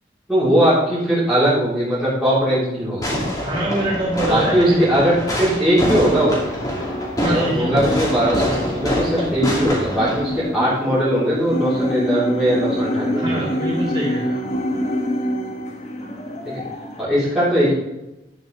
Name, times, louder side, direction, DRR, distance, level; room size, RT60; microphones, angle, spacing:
voice 1, 0.3-3.3 4.3-6.4 7.2-13.5 16.4-16.6 17.0-17.7, equal, 5° right, -11 dB, 3.1 m, -19 dB
Fireworks, 3.0-10.4, left 1 dB, 20° left, 2.4 m, -25 dB
voice 2, 3.4-5.2 7.2-7.9 13.1-14.5, right 1 dB, 25° right, -4 dB, 3.9 m, -25 dB
sound 1, 5.8-17.1, equal, 35° left, 1.3 m, -26 dB
11.0 x 8.4 x 3.9 m, 0.97 s
head